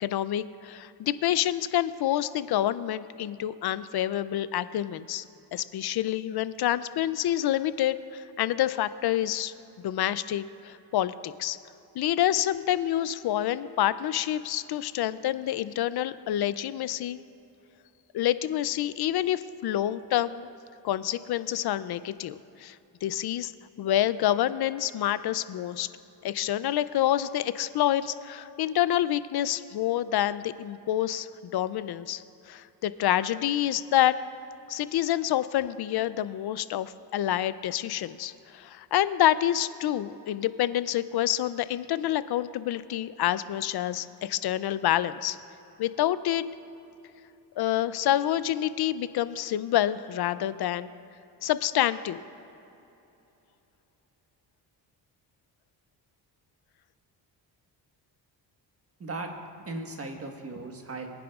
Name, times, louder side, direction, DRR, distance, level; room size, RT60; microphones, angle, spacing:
voice 1, 0.0-5.2 5.5-9.5 9.8-11.6 12.0-17.2 18.1-20.5 20.8-23.5 23.8-25.9 26.2-34.2 34.7-45.4 45.8-46.4 47.6-50.9 51.4-52.2, left 12 dB, 60° left, 15 dB, 0.5 m, -27 dB
voice 2, 59.0-61.1, right 2 dB, 30° right, 3 dB, 1.4 m, -37 dB
22.5 x 9.9 x 2.4 m, 2.9 s
cardioid pair, 110°, 44 cm